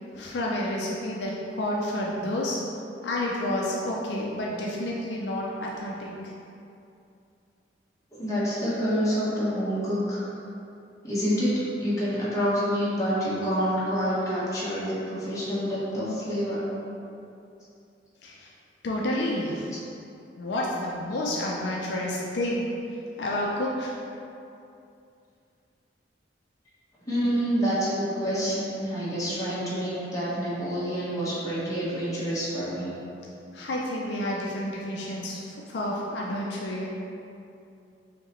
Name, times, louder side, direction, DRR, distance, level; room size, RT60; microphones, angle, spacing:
voice 1, 0.1-2.6 3.0-6.3 18.2-18.5 18.8-19.8 20.4-22.7 23.2-23.9 33.5-36.9, left 1 dB, 70° left, -3 dB, 0.4 m, -30 dB
voice 2, 8.1-10.2 11.0-16.6 27.0-32.9, equal, 20° left, -10 dB, 1.2 m, -27 dB
4.9 x 2.9 x 3.0 m, 2.6 s
head